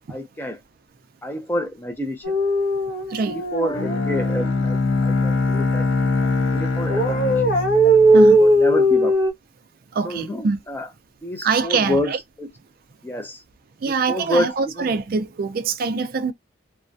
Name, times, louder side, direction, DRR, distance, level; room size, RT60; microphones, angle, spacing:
voice 1, 0.1-0.6 1.2-2.2 3.3-5.9 6.5-7.3 7.8-9.1 10.0-10.9 11.2-12.1 12.4-12.5 13.0-13.4 13.8-14.9, left 1 dB, 10° left, 0.5 m, -28 dB
sound 1, 2.2-4.5 6.9-9.3, right 1 dB, 55° left, 0.9 m, -18 dB
Bowed string instrument, 3.7-8.7, left 3 dB, 75° left, 0.4 m, -23 dB
voice 2, 10.0-10.6 11.4-12.2 13.8-16.3, right 4 dB, 50° right, 0.4 m, -23 dB
2.2 x 2.1 x 2.5 m
head